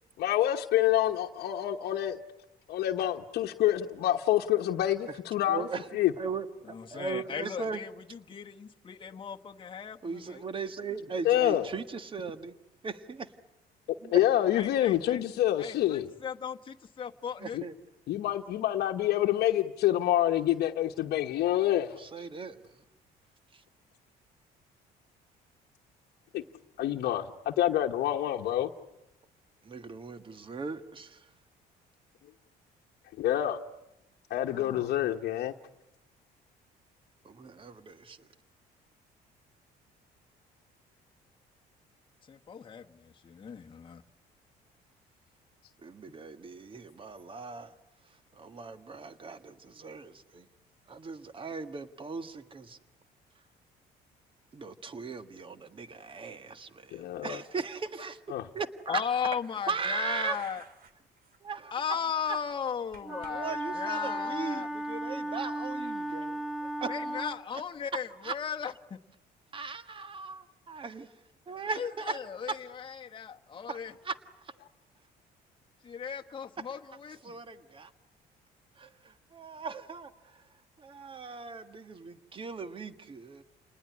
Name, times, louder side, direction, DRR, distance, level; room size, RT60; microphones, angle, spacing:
voice 1, 0.2-2.2 2.7-5.7 5.9-6.1 11.2-11.7 14.1-16.1 17.5-17.6 18.1-22.0 26.3-26.4 26.8-28.7 33.2-33.6 34.3-35.5 56.9-57.4 58.3-58.5, left 12 dB, 70° left, 2 dB, 1.1 m, -27 dB
voice 2, 5.5-5.9 6.2-7.8 10.0-12.6 12.8-13.3 14.0-14.2 17.4-17.7 22.0-22.8 23.5-23.6 29.6-31.3 37.2-38.3 45.8-47.7 48.3-50.5 50.9-52.8 54.5-58.2 58.5-59.0 59.7-60.4 61.4-62.0 62.3-62.4 63.1-67.0 68.2-68.3 69.5-71.1 71.5-72.2 72.5-72.6 73.7-73.8 74.0-74.1 74.4-74.5 77.2-77.9 78.8-80.4 80.8-83.4, right 4 dB, 30° right, 10 dB, 1.6 m, -38 dB
voice 3, 6.7-10.4 14.5-15.2 15.6-17.6 34.4-34.9 42.3-44.0 58.9-60.6 61.7-64.7 66.9-69.0 71.7-73.9 75.8-77.4, left 7 dB, 30° left, 3 dB, 1.2 m, -37 dB
sound 1, 59.3-60.9 61.2-61.4 61.7-63.3 63.6-64.0 65.8-65.9, right 5 dB, 55° right, 3.0 m, -52 dB
Wind instrument woodwind instrument, 63.0-67.4, right 1 dB, ahead, 1.4 m, -35 dB
29.0 x 20.0 x 9.6 m, 0.93 s
cardioid pair, 110°, 17 cm